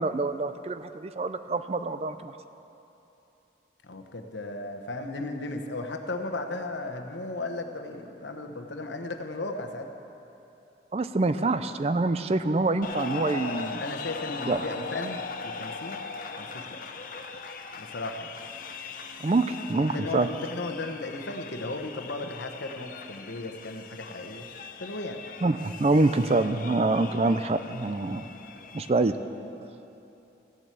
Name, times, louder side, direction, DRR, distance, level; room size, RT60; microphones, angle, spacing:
voice 1, 0.0-2.3 10.9-13.8 14.5-14.6 19.2-20.3 25.4-28.3 28.7-29.2, right 2 dB, 35° right, 11 dB, 0.4 m, -26 dB
voice 2, 3.8-9.9 13.8-16.1 16.4-16.7 17.7-18.4 19.9-24.5 24.8-25.2, left 2 dB, 75° left, 5 dB, 1.1 m, -35 dB
sound 1, 12.8-28.9, left 4 dB, 45° left, 0.7 m, -40 dB
15.5 x 7.5 x 8.3 m, 2.9 s
head